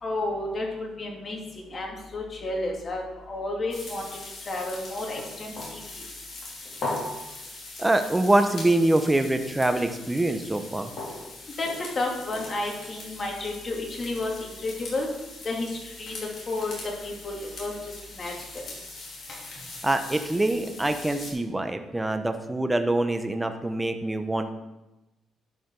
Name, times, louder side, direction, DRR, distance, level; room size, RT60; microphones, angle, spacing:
voice 1, 0.0-4.1 4.5-5.8 11.6-11.7 12.0-15.1 15.4-16.1 16.5-16.7 17.0-17.7 18.1-18.6, left 2 dB, 40° left, -1 dB, 2.5 m, -31 dB
sound 1, 3.7-21.3, left 2 dB, 55° left, 3.7 m, -40 dB
voice 2, 7.8-10.9 19.8-24.5, right 1 dB, 10° right, 8 dB, 0.9 m, -24 dB
11.5 x 5.2 x 5.3 m, 1.0 s
cardioid pair, 90°, 0 cm